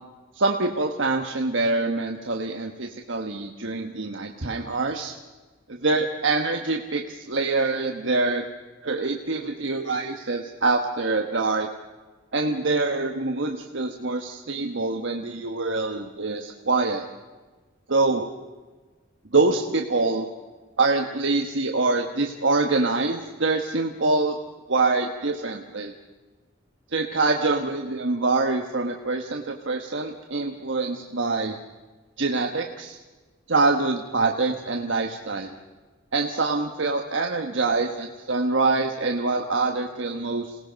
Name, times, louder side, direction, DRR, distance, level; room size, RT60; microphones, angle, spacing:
voice 1, 0.3-5.1 5.7-8.4 8.8-11.7 12.3-17.0 17.9-18.3 19.3-20.3 20.8-24.4 24.7-25.9 26.9-31.6 32.2-33.0 33.5-35.5 36.1-40.6, right 3 dB, 65° right, 3 dB, 1.3 m, -25 dB
27.5 x 19.0 x 5.2 m, 1.3 s
head